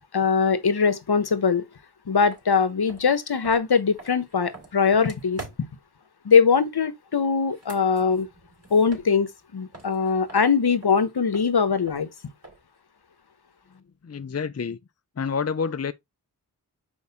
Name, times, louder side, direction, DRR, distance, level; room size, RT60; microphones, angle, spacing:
voice 1, 0.1-1.6 2.1-5.4 6.2-8.3 8.7-12.1, left 5 dB, 70° left, 1.2 m, -21 dB
sound 1, 2.3-2.4 2.8-5.9 7.4-9.5 9.7-12.8, right 3 dB, 35° right, 3.4 m, -46 dB
voice 2, 14.0-14.8 15.2-15.9, left 6 dB, 40° left, 0.6 m, -28 dB
6.4 x 4.8 x 4.2 m
wide cardioid pair, 55°, 40 cm